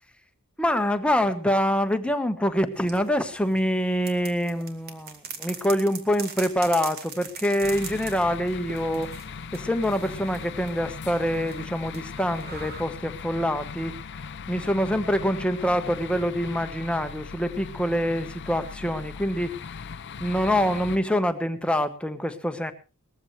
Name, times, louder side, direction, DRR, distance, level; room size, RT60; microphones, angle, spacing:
voice 1, 0.6-9.1 9.5-14.2 14.5-19.5 20.2-22.7, equal, 5° left, 8 dB, 1.2 m, -25 dB
sound 1, 2.7-12.8, right 5 dB, 45° right, 2.2 m, -42 dB
sound 2, 7.6-21.0, left 6 dB, 55° left, 0.6 m, -39 dB
20.0 x 14.5 x 3.2 m, 0.32 s
head